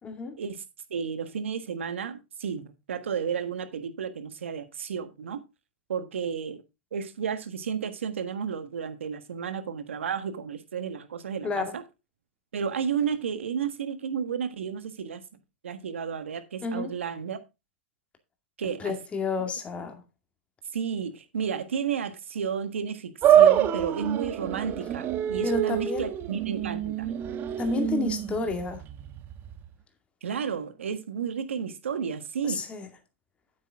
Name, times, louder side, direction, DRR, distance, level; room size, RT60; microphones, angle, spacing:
voice 1, 0.0-0.4 11.4-11.7 16.6-16.9 18.8-20.0 25.4-26.1 27.6-28.8 32.4-32.9, left 4 dB, 20° left, 2.3 m, -30 dB
voice 2, 0.9-5.4 5.9-6.6 6.9-11.8 12.5-15.2 15.6-17.4 18.6-19.0 20.7-27.1 30.2-32.6, right 7 dB, 90° right, 1.6 m, -32 dB
sound 1, 23.2-29.7, right 10 dB, 30° right, 1.1 m, -25 dB
9.1 x 8.6 x 3.6 m
hypercardioid pair, 130°, 7 cm